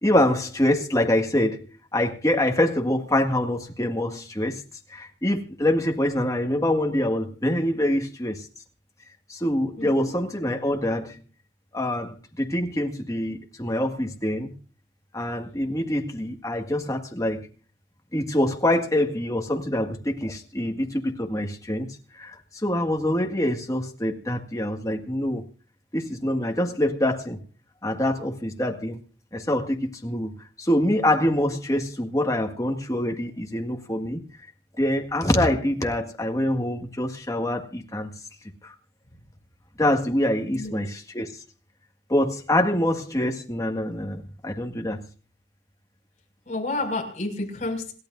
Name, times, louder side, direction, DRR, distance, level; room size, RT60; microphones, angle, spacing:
voice 1, 0.0-1.7 1.9-4.6 4.9-8.5 9.3-11.2 11.7-14.5 15.1-17.5 18.1-25.4 25.9-27.4 27.8-29.0 29.3-30.3 30.6-34.2 34.8-38.1 38.6-38.8 39.8-41.3 42.1-45.0, left 1 dB, 20° left, 1.9 m, -25 dB
voice 2, 9.8-10.1 40.5-40.7 46.4-47.9, left 2 dB, 40° left, 6.0 m, -30 dB
27.5 x 12.0 x 2.6 m
head